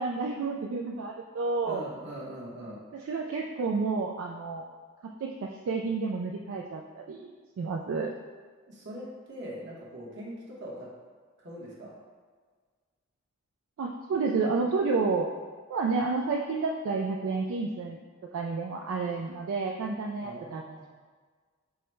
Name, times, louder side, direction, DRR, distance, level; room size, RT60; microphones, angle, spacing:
voice 1, 0.0-1.8 2.9-4.7 5.2-8.1 13.8-15.3 15.7-20.6, right 4 dB, 75° right, 1 dB, 0.3 m, -30 dB
voice 2, 1.6-2.8 8.7-10.9 11.4-11.9 20.2-20.8, right 1 dB, 55° right, -4 dB, 1.0 m, -41 dB
4.7 x 2.1 x 4.5 m, 1.5 s
head